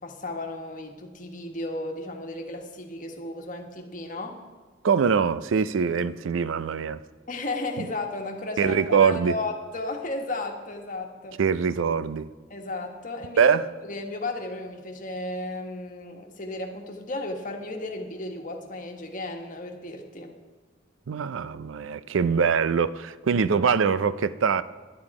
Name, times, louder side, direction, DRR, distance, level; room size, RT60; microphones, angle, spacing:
voice 1, 0.0-4.4 7.3-11.4 12.5-13.6 13.8-20.3, left 2 dB, 40° left, 1.4 m, -34 dB
voice 2, 4.8-7.0 7.8-7.9 8.6-9.3 11.4-12.3 13.4-13.6 21.1-24.6, right 6 dB, 90° right, 0.4 m, -23 dB
11.0 x 10.5 x 4.8 m
head